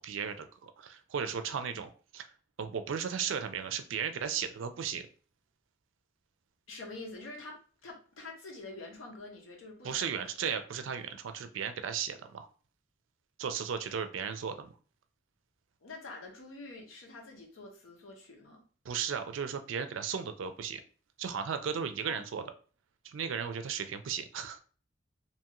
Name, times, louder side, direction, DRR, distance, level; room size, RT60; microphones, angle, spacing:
voice 1, 0.0-2.2 2.6-5.1 9.8-12.5 13.4-14.7 18.9-20.8 21.2-22.5 23.0-24.6, right 7 dB, 75° right, 0.4 m, -35 dB
voice 2, 6.7-10.2 15.8-18.6 22.0-22.2, left 2 dB, 90° left, 0.8 m, -46 dB
2.8 x 2.3 x 2.9 m
head